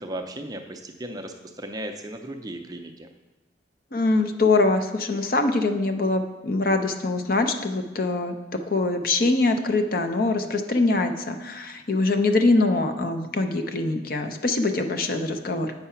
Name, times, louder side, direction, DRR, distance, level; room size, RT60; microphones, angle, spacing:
voice 1, 0.0-3.1, right 1 dB, 20° right, 5 dB, 0.5 m, -36 dB
voice 2, 3.9-15.7, left 2 dB, 50° left, 6 dB, 0.6 m, -23 dB
8.0 x 4.8 x 5.6 m, 1.1 s
head